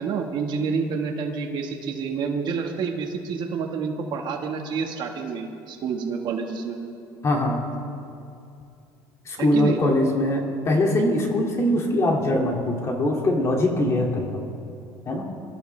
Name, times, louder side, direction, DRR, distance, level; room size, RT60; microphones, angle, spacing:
voice 1, 0.0-6.8 9.4-9.8, right 5 dB, 55° right, 3 dB, 1.4 m, -28 dB
voice 2, 7.2-7.6 9.2-14.4 15.1-15.3, left 1 dB, 30° left, 1 dB, 2.2 m, -22 dB
23.5 x 13.5 x 3.3 m, 2.6 s
cardioid pair, 120°, 9 cm